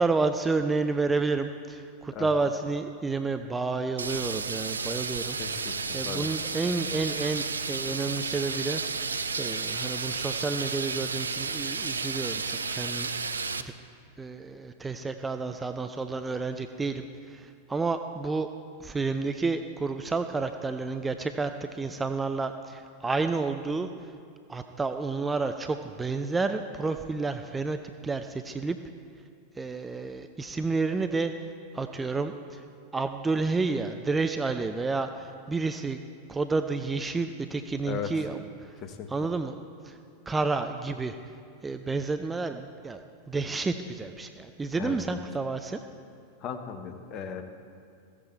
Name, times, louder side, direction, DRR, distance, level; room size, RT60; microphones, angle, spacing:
voice 1, 0.0-9.1 9.4-13.1 13.6-13.7 14.2-18.5 18.8-23.9 24.5-28.8 29.6-31.5 31.7-32.6 32.9-36.0 36.3-38.8 39.1-39.6 39.8-40.0 40.3-41.2 41.6-45.8, right 3 dB, 10° right, 8 dB, 0.4 m, -30 dB
sound 1, 4.0-13.6, right 4 dB, 75° right, 0.4 m, -32 dB
voice 2, 5.4-5.7 6.0-6.3 37.8-38.1 38.8-39.1 44.8-45.2 46.4-47.4, left 7 dB, 35° left, 6 dB, 1.1 m, -36 dB
15.0 x 8.5 x 4.5 m, 2.3 s
figure-of-eight pair, 90°, 0 cm